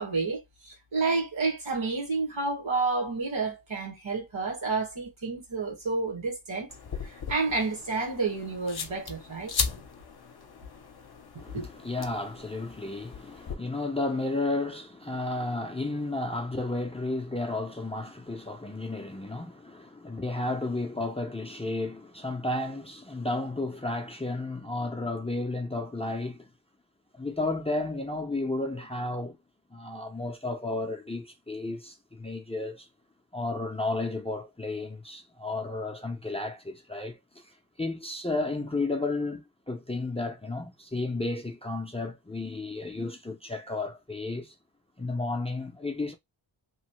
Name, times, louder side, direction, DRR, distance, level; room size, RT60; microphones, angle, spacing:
voice 1, 0.0-6.7 7.0-9.5 11.5-11.7, right 3 dB, 80° right, 1.8 m, -30 dB
sound 1, 6.7-13.5, left 5 dB, 55° left, 0.7 m, -37 dB
voice 2, 11.4-26.5 27.1-29.4 29.7-32.9 33.3-44.6 45.0-46.1, left 2 dB, 15° left, 0.4 m, -33 dB
3.0 x 2.0 x 3.0 m
wide cardioid pair, 70°, 47 cm